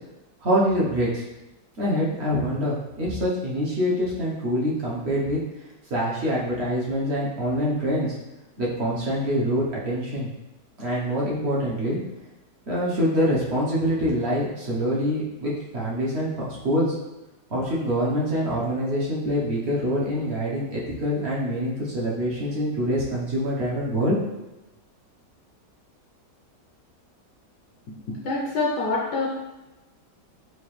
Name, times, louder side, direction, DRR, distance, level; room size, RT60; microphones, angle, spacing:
voice 1, 0.4-1.2 1.8-5.4 5.9-8.1 8.6-10.3 10.8-12.0 12.7-16.9 17.5-24.2, equal, 45° right, -6 dB, 0.9 m, -25 dB
voice 2, 28.1-29.3, left 3 dB, 70° left, -4 dB, 1.1 m, -26 dB
4.7 x 2.5 x 3.1 m, 1.0 s
omnidirectional pair, 1.9 m